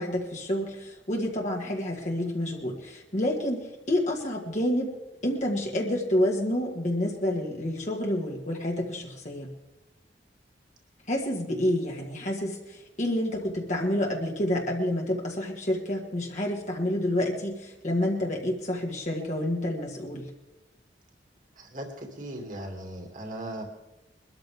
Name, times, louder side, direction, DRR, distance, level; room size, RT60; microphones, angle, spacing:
voice 1, 0.0-4.9 5.2-9.5 11.1-20.3, left 1 dB, 40° left, -1 dB, 1.8 m, -29 dB
voice 2, 21.6-23.6, right 1 dB, 45° right, 1 dB, 2.6 m, -38 dB
23.0 x 13.0 x 3.5 m, 1.0 s
head